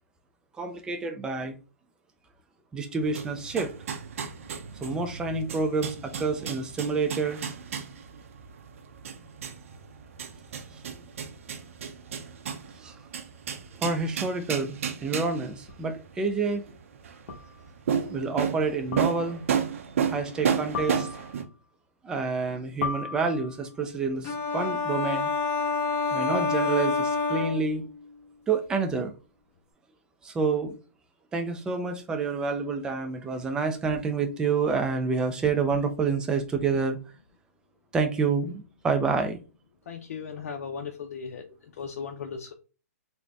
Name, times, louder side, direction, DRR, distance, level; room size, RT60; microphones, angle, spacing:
voice 1, 0.6-1.6 2.7-3.7 4.8-7.4 12.8-12.9 13.8-16.7 18.1-19.4 20.0-21.1 22.0-25.3 26.1-27.9 28.5-29.1 30.2-30.8 31.3-37.0 37.9-39.4, right 4 dB, 10° right, 0.4 m, -28 dB
sound 1, 3.0-21.4, right 7 dB, 60° right, 0.6 m, -33 dB
sound 2, 15.7-15.8 17.3-17.7 18.9-19.5 20.7-21.5 22.8-23.7, left 6 dB, 45° left, 1.1 m, -36 dB
sound 3, 24.2-28.1, left 4 dB, 25° left, 0.8 m, -28 dB
voice 2, 39.9-41.5 41.8-42.5, left 6 dB, 65° left, 0.6 m, -37 dB
3.8 x 2.2 x 3.4 m
hypercardioid pair, 145°, 8 cm